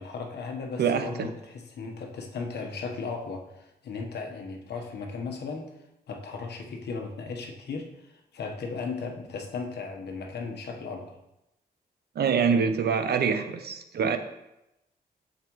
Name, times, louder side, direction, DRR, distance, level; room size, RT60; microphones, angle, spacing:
voice 1, 0.0-5.8 6.1-11.2, left 4 dB, 85° left, 3 dB, 1.2 m, -36 dB
voice 2, 0.8-1.3 12.1-14.2, right 6 dB, 75° right, 8 dB, 0.8 m, -25 dB
9.3 x 7.3 x 3.1 m, 0.89 s
wide cardioid pair, 120°, 17 cm